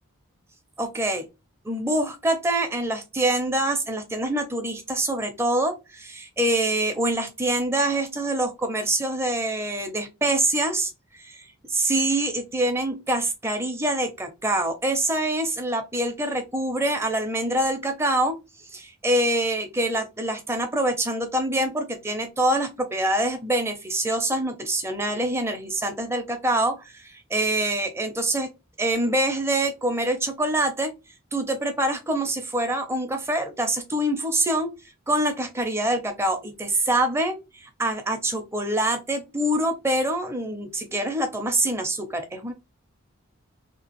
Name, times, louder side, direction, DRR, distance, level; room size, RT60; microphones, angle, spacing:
voice 1, 0.8-1.2 1.6-10.9 11.2-11.4 11.7-18.3 18.7-28.5 28.8-30.9 31.3-34.7 35.1-42.5, right 1 dB, 10° right, 5 dB, 0.5 m, -25 dB
2.9 x 2.3 x 2.9 m, 0.25 s
head